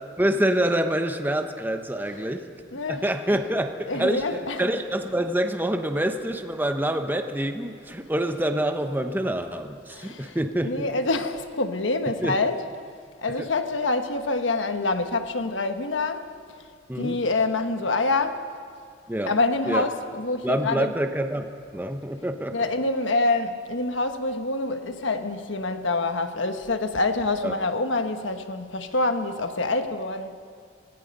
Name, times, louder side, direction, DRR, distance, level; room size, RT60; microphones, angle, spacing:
voice 1, 0.2-2.4 2.9-4.2 4.6-10.9 12.2-12.4 13.4-13.5 16.9-17.2 19.1-19.3 19.7-19.8 20.4-22.6 27.4-27.5, right 1 dB, 10° right, 1.0 m, -26 dB
voice 2, 2.7-3.1 3.9-4.6 9.9-10.4 10.6-12.6 13.2-16.3 16.9-18.4 19.3-20.9 22.5-30.4, left 3 dB, 70° left, 1.3 m, -26 dB
26.0 x 18.5 x 5.5 m
head